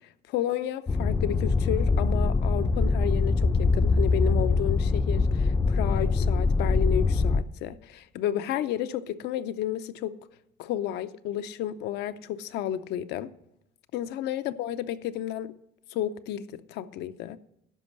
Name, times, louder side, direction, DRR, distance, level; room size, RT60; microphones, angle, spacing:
voice 1, 0.3-10.2 10.6-13.3 13.9-15.5 15.9-17.4, left 11 dB, 80° left, 0.6 m, -32 dB
sound 1, 0.9-7.4, left 3 dB, 20° left, 0.4 m, -23 dB
11.5 x 5.3 x 7.2 m
cardioid pair, 110°, 17 cm